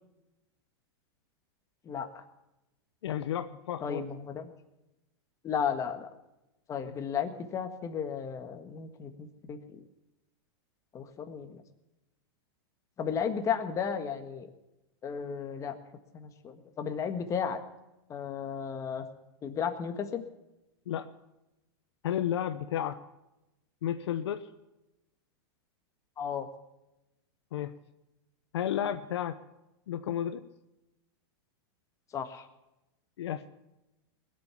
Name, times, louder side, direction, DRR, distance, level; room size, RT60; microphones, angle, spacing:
voice 1, 1.8-2.2 3.8-4.6 5.4-6.1 6.7-9.8 10.9-11.6 13.0-14.5 15.0-15.7 16.1-17.6 18.1-19.0 19.4-20.2 26.2-26.5 32.1-32.5, left 7 dB, 25° left, 6 dB, 1.5 m, -34 dB
voice 2, 3.0-4.0 6.9-7.0 20.9-21.1 22.0-23.0 23.8-24.5 27.5-27.7 28.5-29.4 29.9-30.4 33.2-33.5, left 10 dB, 85° left, 9 dB, 0.9 m, -32 dB
20.5 x 7.7 x 7.0 m, 0.95 s
supercardioid pair, 145°, 14 cm